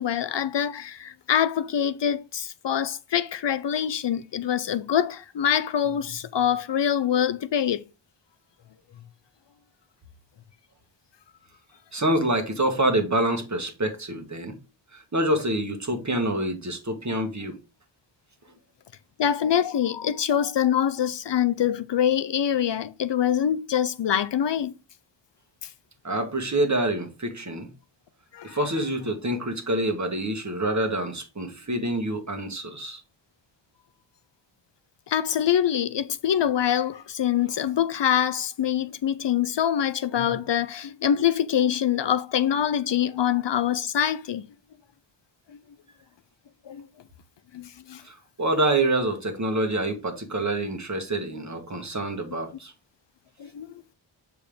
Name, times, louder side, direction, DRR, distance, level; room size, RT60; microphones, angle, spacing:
voice 1, 0.0-7.8 19.2-24.7 28.3-28.6 35.1-44.4 46.7-46.9 47.5-48.0 53.4-53.7, left 9 dB, 60° left, 0.5 m, -25 dB
voice 2, 11.9-14.6 14.9-17.6 26.0-27.7 28.4-33.0 48.0-52.7, right 1 dB, 35° right, 1.4 m, -26 dB
6.8 x 4.6 x 3.5 m
wide cardioid pair, 65°, 48 cm